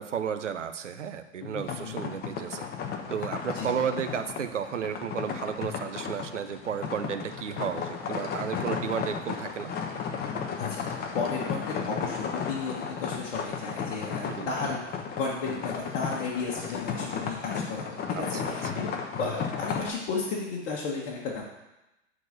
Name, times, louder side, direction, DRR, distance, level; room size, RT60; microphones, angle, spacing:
voice 1, 0.0-2.7 3.1-9.7 14.3-14.5 18.1-18.9, right 7 dB, 90° right, 9 dB, 0.8 m, -33 dB
voice 2, 1.4-2.0 3.6-3.7 10.6-10.8 11.1-14.8 15.2-18.9 19.2-21.4, left 4 dB, 55° left, -4 dB, 1.7 m, -34 dB
sound 1, 1.6-19.9, left 6 dB, 25° left, 1.0 m, -34 dB
8.0 x 4.3 x 6.6 m, 0.94 s
hypercardioid pair, 110°, 35 cm